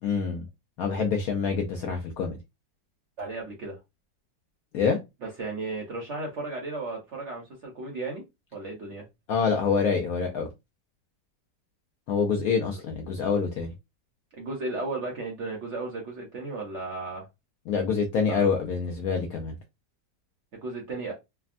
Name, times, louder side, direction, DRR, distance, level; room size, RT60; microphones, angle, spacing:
voice 1, 0.0-0.5 0.8-2.4 4.7-5.0 9.3-10.5 12.1-13.7 17.7-19.5, left 5 dB, 75° left, 0.8 m, -26 dB
voice 2, 3.2-3.8 5.2-8.2 8.5-9.1 14.3-17.3 18.3-18.4 20.6-21.1, right 3 dB, 60° right, 0.8 m, -34 dB
3.4 x 2.0 x 2.4 m
omnidirectional pair, 2.0 m